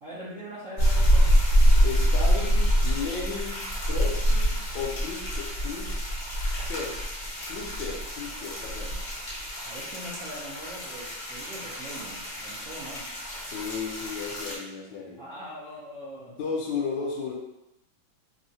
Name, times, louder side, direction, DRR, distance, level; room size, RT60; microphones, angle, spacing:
voice 1, 0.0-1.4 9.6-13.1 15.2-16.4, equal, 65° right, -10 dB, 0.8 m, -42 dB
sound 1, 0.8-14.5, equal, 45° left, 0.8 m, -26 dB
voice 2, 1.8-6.0 6.6-7.0 7.5-9.0 13.5-15.2 16.3-17.3, left 5 dB, 75° left, -2 dB, 1.2 m, -34 dB
3.5 x 2.1 x 2.7 m, 0.90 s
omnidirectional pair, 2.2 m